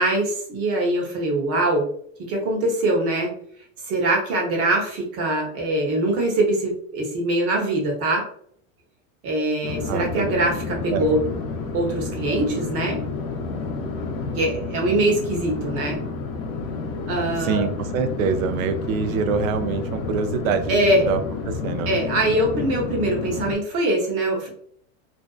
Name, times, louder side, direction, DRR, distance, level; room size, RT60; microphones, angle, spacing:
voice 1, 0.0-1.9 2.2-3.3 3.9-8.3 9.2-11.2 11.7-13.0 14.3-16.0 17.1-17.7 20.7-21.0 21.9-24.5, right 1 dB, 35° right, 0 dB, 0.9 m, -23 dB
sound 1, 9.6-23.5, left 4 dB, 50° left, 0.7 m, -30 dB
voice 2, 9.9-10.4 10.9-11.1 17.4-22.0, right 5 dB, 80° right, 8 dB, 0.5 m, -25 dB
2.6 x 2.2 x 2.3 m, 0.62 s
supercardioid pair, 135°, 40 cm